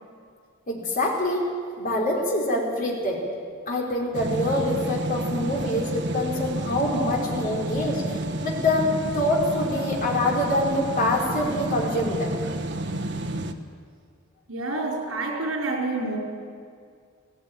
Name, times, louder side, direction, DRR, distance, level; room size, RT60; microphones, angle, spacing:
voice 1, 0.7-1.4 1.8-3.2 3.7-12.4, left 1 dB, 45° left, -2 dB, 4.2 m, -25 dB
sound 1, 4.1-13.5, right 1 dB, 55° right, 1.1 m, -30 dB
voice 2, 14.5-16.2, right 2 dB, 80° right, -1 dB, 4.7 m, -28 dB
17.0 x 16.0 x 9.4 m, 2.2 s
head